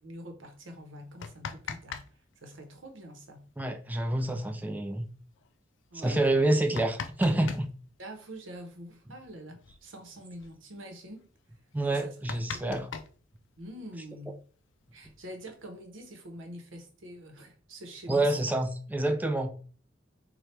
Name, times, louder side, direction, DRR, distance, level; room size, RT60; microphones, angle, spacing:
voice 1, 0.0-2.1 2.4-3.5 5.9-6.4 8.0-11.2 11.9-12.1 12.5-12.8 13.6-14.4 14.9-18.4, right 1 dB, 85° right, 0.8 m, -45 dB
sound 1, 1.0-2.1 2.3-2.4 4.2-4.3 4.6-4.7 5.4-5.5 6.3-7.7 9.2-9.3 9.6-9.8 10.1-10.5 11.0-11.1 11.5-11.6 11.9-13.8 14.7-15.6, left 6 dB, 70° left, 0.4 m, -41 dB
voice 2, 3.6-5.1 5.9-7.7 11.7-12.9 18.1-19.5, right 1 dB, 10° right, 0.4 m, -27 dB
4.3 x 2.2 x 3.2 m
head